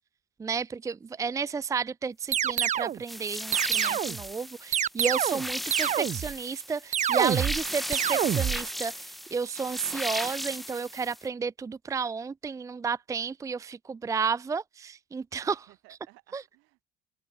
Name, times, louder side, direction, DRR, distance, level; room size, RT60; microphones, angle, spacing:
voice 1, 0.4-15.7 16.3-16.4, right 5 dB, 15° right, 0.6 m, -32 dB
voice 2, 1.1-1.7 15.4-16.8, right 24 dB, 85° right, 7.2 m, -60 dB
sound 1, 2.3-3.0 3.5-4.2 4.7-5.5 5.7-6.3 6.9-7.6 7.9-8.6, right 10 dB, 40° right, 1.2 m, -26 dB
sound 2, 3.1-11.2, equal, ahead, 2.4 m, -36 dB
open air
cardioid pair, 145°, 20 cm